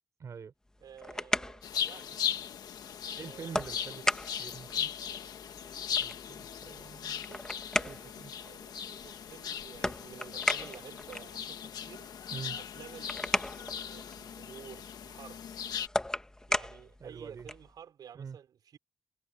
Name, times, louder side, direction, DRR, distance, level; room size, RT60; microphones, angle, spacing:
voice 1, 0.2-0.5 3.1-4.0 4.4-4.9 6.0-7.2 7.9-8.3 12.3-12.6 17.0-17.5 18.1-18.4, right 6 dB, 50° right, 3.5 m, -45 dB
sound 1, 0.7-17.7, left 1 dB, 10° left, 1.4 m, -38 dB
voice 2, 0.8-2.5 3.1-4.2 7.2-8.1 8.4-12.1 12.6-15.4 16.5-18.8, right 8 dB, 75° right, 4.9 m, -52 dB
sound 2, 1.6-15.9, left 8 dB, 75° left, 1.4 m, -38 dB
wide cardioid pair, 130°, 7 cm